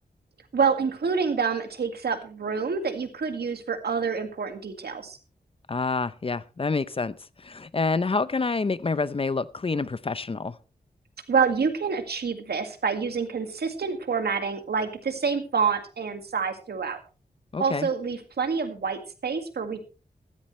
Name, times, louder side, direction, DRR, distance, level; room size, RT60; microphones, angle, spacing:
voice 1, 0.5-5.2 11.3-17.0 17.6-19.8, right 5 dB, 85° right, 2.0 m, -27 dB
voice 2, 5.7-10.6 17.5-17.9, left 4 dB, 35° left, 0.6 m, -27 dB
15.0 x 14.5 x 3.2 m
wide cardioid pair, 105°, 16 cm